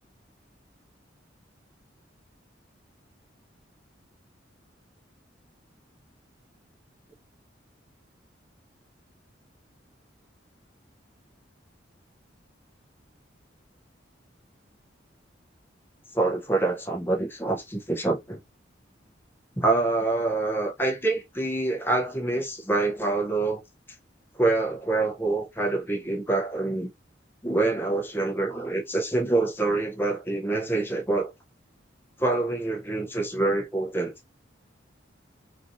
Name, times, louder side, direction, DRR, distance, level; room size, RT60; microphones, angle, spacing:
voice 1, 16.1-18.4 19.6-23.6 24.4-26.9 27.4-31.3 32.2-34.1, right 2 dB, 10° left, 0.7 m, -26 dB
3.0 x 2.6 x 2.6 m
head